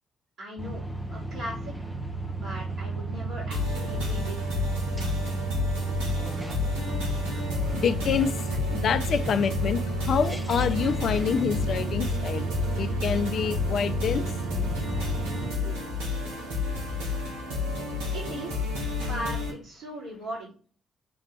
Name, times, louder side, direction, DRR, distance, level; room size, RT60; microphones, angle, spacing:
voice 1, 0.4-0.8 1.1-1.9 2.3-4.8 18.1-20.5, equal, 65° right, 3.8 m, -39 dB
sound 1, 0.6-15.5, right 3 dB, 10° right, 1.1 m, -32 dB
sound 2, 3.5-19.5, left 3 dB, 85° right, 1.8 m, -31 dB
voice 2, 7.7-14.3 15.6-15.8 16.3-16.8, left 7 dB, 60° left, 0.6 m, -27 dB
7.0 x 3.3 x 5.7 m
hypercardioid pair, 45°, 0 cm